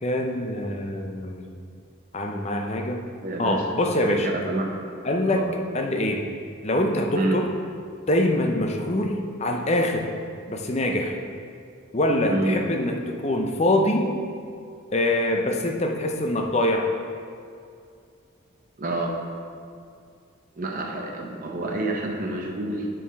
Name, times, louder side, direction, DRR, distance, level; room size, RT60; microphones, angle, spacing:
voice 1, 0.0-1.5 2.1-3.0 3.4-4.3 5.0-5.4 5.7-6.3 6.6-7.5 8.1-10.1 10.5-11.1 11.9-14.1 14.9-16.9, left 1 dB, 30° left, 3 dB, 0.6 m, -24 dB
voice 2, 3.2-3.6 4.1-4.7 5.3-5.5 7.1-7.4 12.3-12.6 18.8-19.1 20.6-22.9, right 2 dB, 40° right, 1 dB, 0.6 m, -28 dB
7.1 x 4.7 x 4.6 m, 2.3 s
head